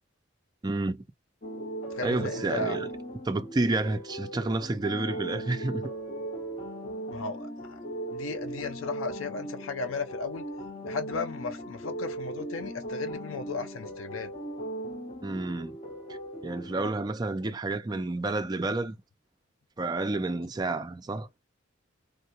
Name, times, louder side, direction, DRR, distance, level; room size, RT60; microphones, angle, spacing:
voice 1, 0.6-1.0 2.0-2.9 3.3-5.9 15.2-15.8 16.4-19.0 19.8-21.3, right 2 dB, 20° right, 0.3 m, -30 dB
sound 1, 1.4-16.9, right 1 dB, 35° left, 1.2 m, -38 dB
voice 2, 1.9-2.8 7.1-7.8 8.1-10.4 10.8-14.3, left 4 dB, 75° left, 0.5 m, -35 dB
3.5 x 2.2 x 2.8 m
head